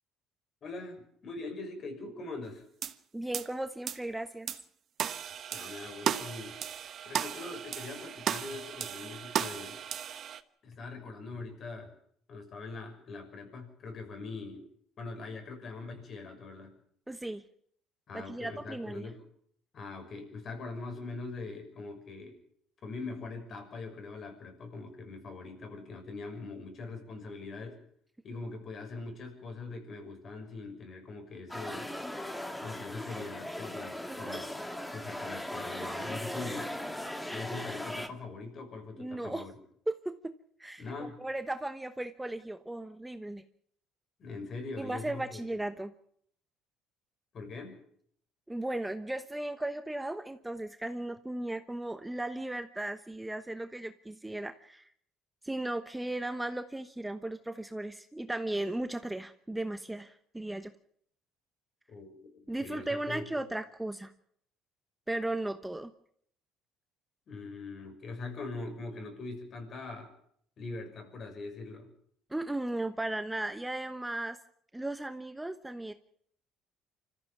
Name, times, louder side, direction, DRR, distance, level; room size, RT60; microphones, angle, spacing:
voice 1, 0.6-2.6 5.5-6.6 7.1-9.8 10.6-11.9 12.3-14.7 15.0-16.7 18.1-19.2 19.7-22.4 22.8-27.8 28.2-31.9 32.6-34.5 34.9-36.8 37.3-39.5 40.8-41.2 44.2-45.4 47.3-47.8 61.9-63.3 67.3-70.2 70.6-71.9, left 3 dB, 50° left, 5 dB, 6.3 m, -42 dB
sound 1, 2.8-2.9 3.3-3.5 3.9-4.0 4.5-4.6 5.0-10.4, right 9 dB, 55° right, 1.1 m, -35 dB
voice 2, 3.1-4.5 17.1-17.4 18.1-19.1 34.1-34.4 39.0-39.5 39.9-40.3 40.6-43.4 44.8-45.9 48.5-54.9 55.4-60.7 62.5-64.1 65.1-65.9 72.3-74.4 74.7-75.9, right 1 dB, 10° right, 9 dB, 1.1 m, -36 dB
sound 2, 31.5-38.1, left 1 dB, 5° left, 2.0 m, -38 dB
25.5 x 14.5 x 7.3 m, 0.66 s
supercardioid pair, 90°, 0 cm